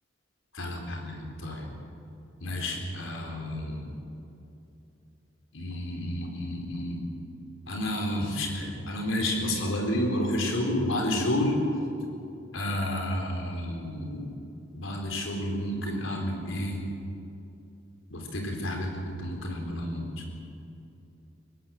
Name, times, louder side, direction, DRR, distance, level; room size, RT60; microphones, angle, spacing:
voice 1, 0.5-1.7 2.4-3.9 5.5-7.0 7.7-11.6 12.5-14.3 14.7-16.8 18.1-20.2, left 1 dB, 85° left, 1 dB, 4.2 m, -30 dB
23.5 x 18.5 x 7.8 m, 2.8 s
head